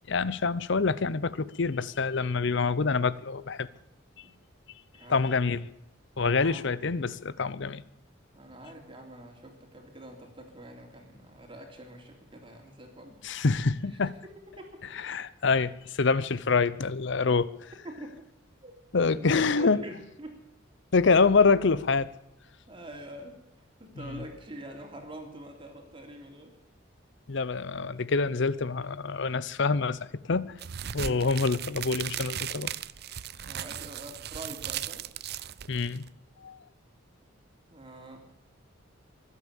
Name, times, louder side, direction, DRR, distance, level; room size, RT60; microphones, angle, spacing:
voice 1, 0.1-3.7 5.1-5.7 6.2-7.8 13.2-14.1 15.0-17.5 18.9-19.8 20.9-22.1 27.3-30.0 30.3-30.6 30.9-32.7 35.7-36.0 36.4-36.6, left 4 dB, 60° left, 0.7 m, -26 dB
voice 2, 4.9-5.3 6.2-6.7 8.3-13.2 14.0-14.1 14.6-14.8 17.8-18.2 18.6-18.7 19.0-20.3 21.2-21.3 22.7-23.3 23.8-26.6 30.9-31.3 33.4-35.1 37.7-38.3, right 1 dB, 25° right, 3.2 m, -45 dB
sound 1, 30.6-36.1, right 10 dB, 55° right, 0.5 m, -37 dB
23.0 x 8.5 x 7.1 m
head